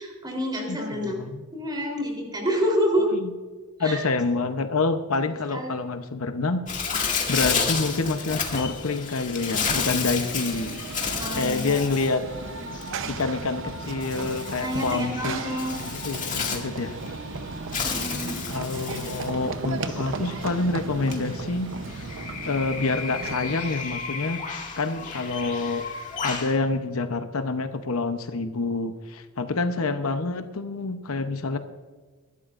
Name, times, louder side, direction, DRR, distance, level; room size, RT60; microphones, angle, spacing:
voice 1, 0.0-1.2 1.5-3.1 3.8-4.0 5.5-5.7 11.2-11.6 14.6-15.7 17.8-18.4, equal, 20° right, 1 dB, 3.6 m, -27 dB
voice 2, 0.7-1.5 3.0-3.3 3.8-6.6 7.3-10.8 11.4-12.3 13.1-15.5 15.9-17.0 18.5-22.0 22.4-24.4 24.8-25.8 26.2-31.6, left 3 dB, 65° left, 8 dB, 0.8 m, -27 dB
Bird, 6.7-26.5, left 5 dB, 35° left, 2.0 m, -32 dB
Run / Train, 9.4-23.8, right 3 dB, 60° right, 0.8 m, -35 dB
22.0 x 12.0 x 2.5 m, 1.4 s
head